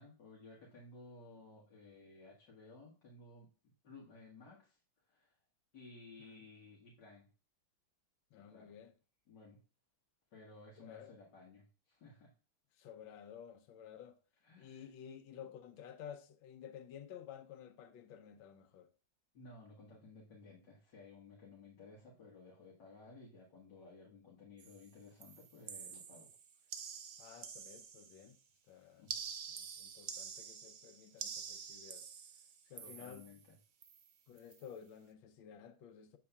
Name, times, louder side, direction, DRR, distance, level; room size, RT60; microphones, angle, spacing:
voice 1, 0.0-3.5 3.8-4.8 5.1-5.4 5.7-7.3 8.3-8.8 9.3-9.6 10.3-12.3 14.4-14.9 19.3-26.3 29.0-29.2 32.8-33.6, left 3 dB, 65° left, 2.0 m, -57 dB
voice 2, 8.3-8.9 10.8-11.1 12.8-14.2 14.6-18.9 27.2-28.4 28.7-29.1 29.6-32.1 32.7-33.2 34.3-36.2, left 8 dB, 80° left, 1.5 m, -53 dB
sound 1, 24.6-24.9 25.2-28.3 29.1-33.4 33.8-34.1 34.4-34.6, right 6 dB, 85° right, 0.5 m, -48 dB
8.4 x 6.8 x 2.3 m
omnidirectional pair, 2.1 m